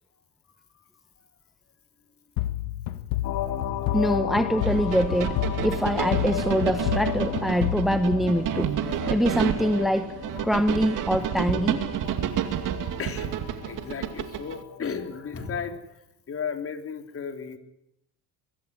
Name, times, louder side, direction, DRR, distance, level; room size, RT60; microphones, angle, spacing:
sound 1, 2.4-9.0, left 14 dB, 80° left, 1.4 m, -31 dB
sound 2, 3.2-15.8, left 10 dB, 65° left, 2.4 m, -36 dB
voice 1, 3.9-5.4 5.6-8.7 9.1-10.1 10.4-11.9, equal, ahead, 1.2 m, -24 dB
sound 3, 4.6-14.6, right 10 dB, 60° right, 2.5 m, -30 dB
voice 2, 13.0-17.6, left 6 dB, 40° left, 3.8 m, -35 dB
22.0 x 16.5 x 9.7 m
supercardioid pair, 90°, 36 cm